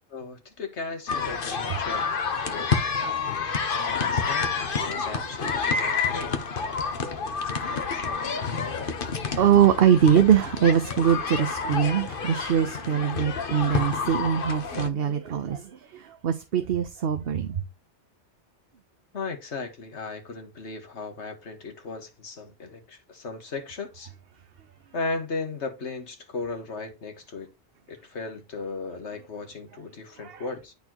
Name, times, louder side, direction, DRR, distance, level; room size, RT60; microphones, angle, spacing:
voice 1, 0.1-2.0 2.4-3.0 3.3-6.4 19.1-24.1 24.9-27.5 27.9-30.7, left 3 dB, 70° left, 1.8 m, -36 dB
sound 1, 1.1-14.9, left 5 dB, 50° left, 1.2 m, -29 dB
voice 2, 2.6-4.1 5.0-5.5 5.8-5.9 7.6-8.0 9.4-17.6 30.2-30.4, right 8 dB, 60° right, 0.9 m, -23 dB
11.5 x 4.2 x 3.0 m
omnidirectional pair, 1.2 m